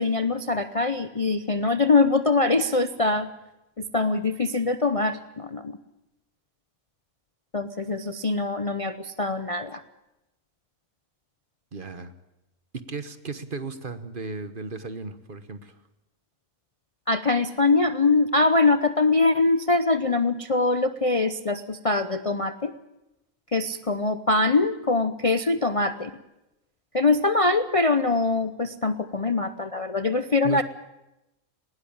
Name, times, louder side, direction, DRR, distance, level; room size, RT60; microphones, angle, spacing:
voice 1, 0.0-3.3 3.8-5.8 7.5-9.8 17.1-22.7 23.5-26.1 26.9-30.6, left 3 dB, 30° left, 10 dB, 0.7 m, -23 dB
voice 2, 11.7-12.1 12.7-15.7 30.4-30.6, right 4 dB, 40° right, 11 dB, 1.4 m, -35 dB
19.5 x 18.5 x 8.7 m, 0.93 s
omnidirectional pair, 1.5 m